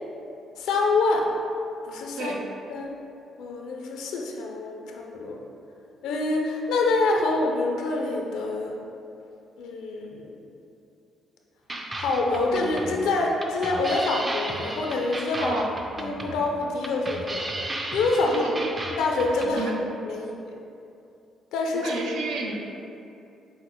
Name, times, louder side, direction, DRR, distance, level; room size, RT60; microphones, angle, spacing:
voice 1, 0.6-1.3 1.9-2.3 2.7-2.9 3.4-5.4 6.0-8.8 9.6-10.4 12.0-15.5 16.0-17.5 17.9-18.6 19.0-19.7 20.1-20.5 21.5-21.9, left 3 dB, 90° left, 0 dB, 0.4 m, -26 dB
sound 1, 11.7-19.5, right 1 dB, 25° right, 0.4 m, -35 dB
voice 2, 18.3-18.7 19.5-19.8 21.7-22.6, right 2 dB, 85° right, -1 dB, 0.5 m, -30 dB
5.9 x 2.0 x 3.7 m, 2.7 s
cardioid pair, 90°, 0 cm